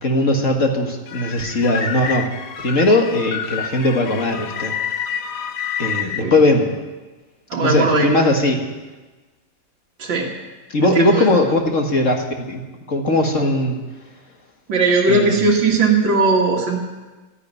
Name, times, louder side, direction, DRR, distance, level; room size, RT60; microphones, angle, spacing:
voice 1, 0.0-2.3 2.6-4.7 5.8-6.7 7.6-8.6 10.7-12.6 12.9-13.8 15.1-15.4, left 2 dB, 40° left, 2 dB, 2.1 m, -19 dB
sound 1, 1.1-6.2, left 7 dB, 65° left, 1.6 m, -28 dB
voice 2, 7.5-8.1 10.0-10.3 10.8-11.3 14.7-16.8, right 3 dB, 80° right, -3 dB, 2.6 m, -18 dB
12.5 x 10.5 x 9.5 m, 1.2 s
omnidirectional pair, 2.0 m